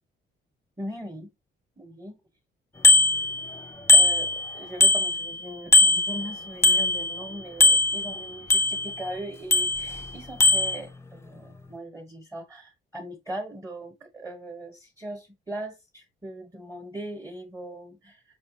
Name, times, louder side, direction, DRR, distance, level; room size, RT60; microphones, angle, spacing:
voice 1, 0.8-1.3 1.8-2.2 3.9-18.2, right 1 dB, 15° right, 1.0 m, -39 dB
Bicycle bell, 2.8-3.6 3.9-5.4 5.7-7.3 7.6-9.0 9.5-10.1 10.4-10.8, left 2 dB, 15° left, 0.4 m, -20 dB
4.8 x 2.7 x 3.0 m
cardioid pair, 90°, 20 cm